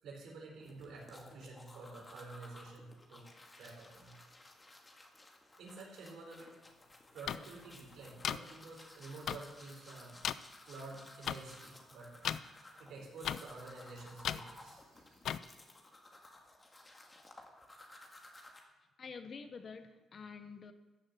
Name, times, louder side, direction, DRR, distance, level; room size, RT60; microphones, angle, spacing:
voice 1, 0.0-4.4 5.6-6.6 7.1-12.5 12.8-15.2, right 3 dB, 75° right, -1 dB, 4.6 m, -50 dB
sound 1, 0.6-18.6, left 2 dB, 20° left, 2.0 m, -57 dB
sound 2, 7.3-7.4 8.2-8.4 9.3-9.4 10.2-10.3 11.3-11.4 12.2-12.4 13.2-13.4 14.2-14.4 15.2-15.4, left 9 dB, 70° left, 0.4 m, -34 dB
voice 2, 19.0-20.7, left 5 dB, 45° left, 9 dB, 1.1 m, -48 dB
14.0 x 6.5 x 8.1 m, 1.2 s
cardioid pair, 90°, 0 cm